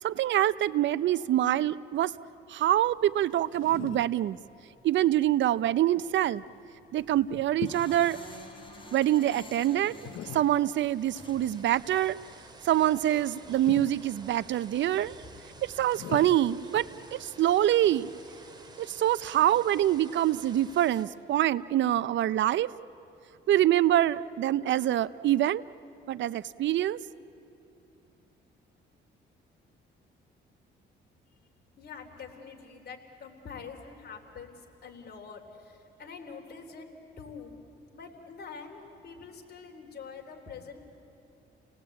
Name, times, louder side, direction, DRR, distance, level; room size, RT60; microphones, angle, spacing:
voice 1, 0.0-2.1 2.5-4.4 4.8-6.4 6.9-8.2 8.9-12.2 12.6-15.1 15.6-16.9 17.2-18.1 18.8-22.7 23.5-25.6 26.1-27.0, right 12 dB, 70° right, 17 dB, 0.6 m, -25 dB
sound 1, 2.7-18.6, left 10 dB, 75° left, 0.9 m, -46 dB
sound 2, 7.0-12.1, left 1 dB, 25° left, 3.7 m, -49 dB
sound 3, 8.8-21.1, right 2 dB, 20° right, 2.4 m, -52 dB
voice 2, 31.8-36.9 37.2-37.5 37.9-40.8, left 5 dB, 55° left, 3 dB, 3.5 m, -45 dB
29.5 x 18.5 x 8.6 m, 2.9 s
cardioid pair, 90°, 20 cm